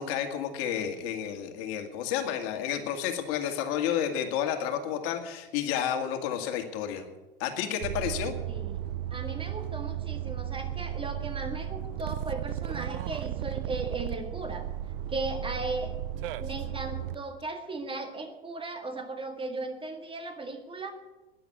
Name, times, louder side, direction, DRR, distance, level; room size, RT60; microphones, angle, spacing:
voice 1, 0.0-7.0 7.4-8.4, left 9 dB, 50° left, 6 dB, 2.2 m, -31 dB
sound 1, 7.8-17.1, right 11 dB, 60° right, 0.7 m, -35 dB
voice 2, 8.5-8.8 9.1-14.7 15.1-15.9 16.4-20.9, right 2 dB, 15° right, 5 dB, 1.9 m, -37 dB
12.0 x 10.5 x 9.4 m, 1.1 s
hypercardioid pair, 95°, 30 cm